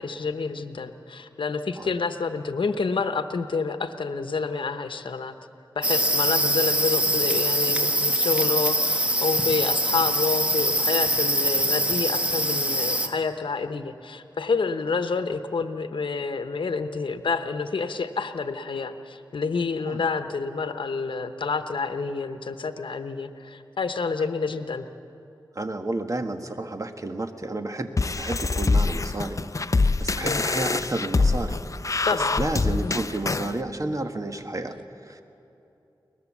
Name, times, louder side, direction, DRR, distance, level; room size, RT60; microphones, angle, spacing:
voice 1, 0.0-5.3 5.8-24.8 30.2-30.4 32.0-32.9, left 4 dB, 80° left, 9 dB, 0.9 m, -28 dB
sound 1, 5.8-13.1, equal, 15° right, 1.6 m, -23 dB
voice 2, 25.5-27.9 28.2-29.4 29.7-31.6 32.1-34.8 35.0-35.2, right 2 dB, 40° right, 7 dB, 1.4 m, -31 dB
sound 2, 28.0-33.5, left 3 dB, 40° left, 0.6 m, -24 dB
22.5 x 20.0 x 7.3 m, 2.9 s
wide cardioid pair, 60°, 8 cm